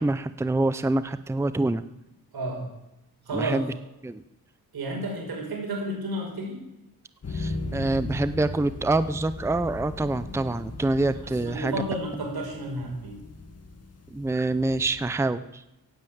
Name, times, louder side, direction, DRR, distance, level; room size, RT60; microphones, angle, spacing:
voice 1, 0.0-1.8 3.3-3.7 4.0-4.2 7.3-11.7 14.1-15.6, right 2 dB, 5° right, 13 dB, 0.6 m, -26 dB
voice 2, 2.3-2.7 3.3-3.6 4.7-6.6 11.4-13.2, right 1 dB, 80° right, 1 dB, 5.6 m, -31 dB
sound 1, 7.2-15.2, left 2 dB, 40° left, 2.0 m, -38 dB
16.0 x 9.3 x 8.7 m, 0.92 s
wide cardioid pair, 110°, 37 cm